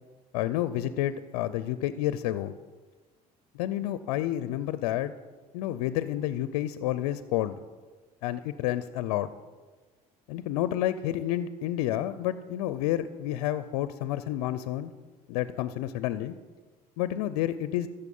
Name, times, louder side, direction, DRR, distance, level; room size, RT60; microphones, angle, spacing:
voice 1, 0.3-2.5 3.5-5.1 5.5-7.5 8.2-9.3 10.3-14.9 15.3-16.4 17.0-17.9, left 13 dB, 80° left, 14 dB, 0.5 m, -30 dB
14.0 x 6.7 x 5.4 m, 1.3 s
hypercardioid pair, 70°, 19 cm